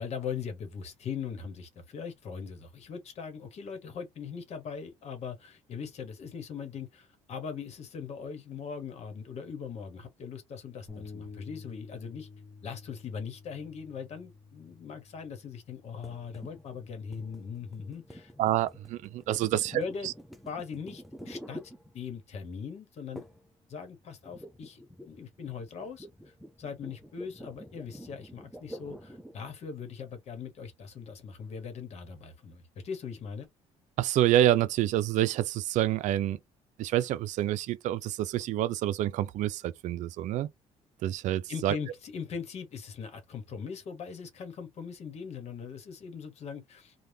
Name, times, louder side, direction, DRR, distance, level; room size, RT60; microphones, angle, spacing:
voice 1, 0.0-12.3 12.6-18.3 19.5-20.1 20.4-21.6 21.9-23.2 23.7-33.5 41.5-46.9, left 6 dB, 55° left, 1.2 m, -40 dB
Bass guitar, 10.9-17.1, left 4 dB, 30° left, 1.0 m, -50 dB
sound 1, 16.0-22.4 23.2-23.5 23.8-29.5, equal, ahead, 0.6 m, -48 dB
voice 2, 18.4-20.1 34.0-36.4 36.8-40.5 41.0-41.8, right 13 dB, 70° right, 0.5 m, -27 dB
3.3 x 2.3 x 2.8 m
cardioid pair, 95°, 13 cm